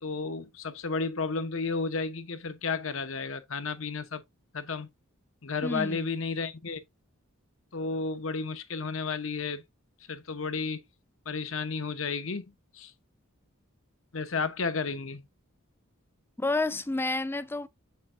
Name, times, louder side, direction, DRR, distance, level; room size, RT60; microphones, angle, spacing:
voice 1, 0.0-4.2 4.5-4.9 5.4-6.8 7.7-9.6 10.1-10.8 11.3-12.4 12.7-12.9 14.1-15.2, left 4 dB, 70° left, 1.0 m, -32 dB
voice 2, 5.6-6.1 16.4-17.7, left 2 dB, 10° left, 0.4 m, -30 dB
7.7 x 6.6 x 2.6 m
head